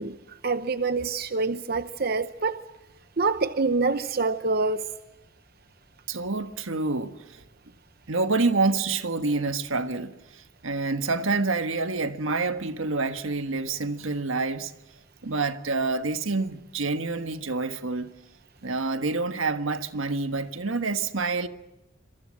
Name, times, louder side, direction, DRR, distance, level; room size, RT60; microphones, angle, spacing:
voice 1, 0.0-2.6 3.2-4.8, right 3 dB, 50° right, 0.9 m, -26 dB
voice 2, 6.1-7.4 8.1-14.7 15.2-18.1 18.6-21.5, right 3 dB, 85° right, 1.5 m, -27 dB
27.0 x 23.0 x 7.5 m
head